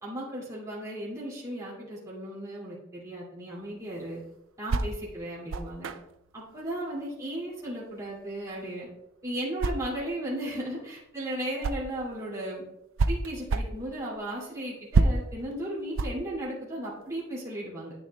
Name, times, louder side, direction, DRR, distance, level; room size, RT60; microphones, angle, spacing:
voice 1, 0.0-4.2 4.6-5.9 6.3-8.9 9.2-12.6 13.1-17.9, right 1 dB, 15° right, -6 dB, 2.5 m, -35 dB
sound 1, 3.6-12.1 12.5-17.3, right 3 dB, 70° right, 0.4 m, -31 dB
10.0 x 8.9 x 2.3 m, 0.87 s
head